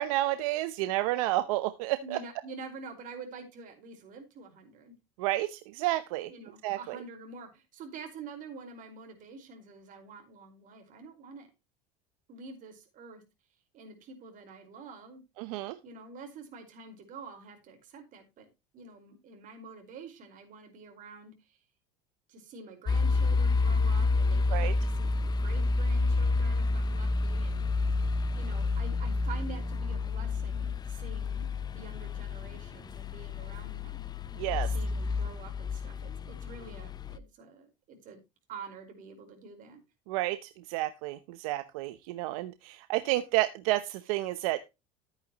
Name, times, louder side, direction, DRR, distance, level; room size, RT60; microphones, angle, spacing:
voice 1, 0.0-2.2 5.2-6.3 6.6-7.0 15.4-15.8 24.5-24.7 34.4-34.7 40.1-44.6, right 16 dB, 85° right, 11 dB, 0.9 m, -30 dB
voice 2, 2.0-5.0 6.3-11.5 12.3-13.2 13.7-15.2 15.8-18.5 18.7-21.6 22.3-27.7 28.3-31.5 31.7-34.0 34.5-38.2 38.5-39.8, right 3 dB, 50° right, 4 dB, 5.0 m, -47 dB
sound 1, 22.9-37.2, left 3 dB, 25° left, 0.8 m, -29 dB
13.5 x 9.2 x 3.0 m, 0.25 s
supercardioid pair, 120°, 18 cm